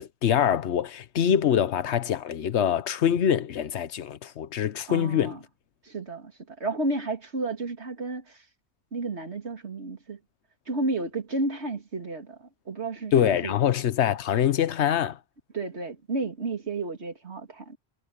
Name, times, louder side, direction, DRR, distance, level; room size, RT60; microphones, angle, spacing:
voice 1, 0.0-5.4 13.1-15.2, left 9 dB, 90° left, 1.1 m, -24 dB
voice 2, 4.9-5.4 5.8-8.4 8.9-10.2 10.7-13.6 15.5-17.8, right 2 dB, 85° right, 3.0 m, -32 dB
omnidirectional pair, 1.1 m